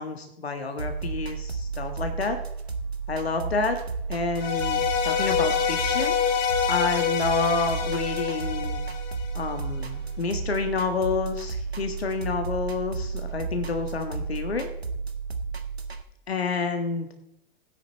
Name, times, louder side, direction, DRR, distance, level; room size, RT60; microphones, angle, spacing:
voice 1, 0.0-2.4 3.1-3.8 4.1-6.4 6.7-8.8 9.3-14.7 16.3-17.1, left 4 dB, 80° left, 6 dB, 1.5 m, -29 dB
sound 1, 0.8-16.0, right 5 dB, 90° right, 1.5 m, -33 dB
sound 2, 4.4-9.6, left 8 dB, 35° left, 1.9 m, -26 dB
16.5 x 10.0 x 4.2 m, 0.79 s
figure-of-eight pair, 110°, 31 cm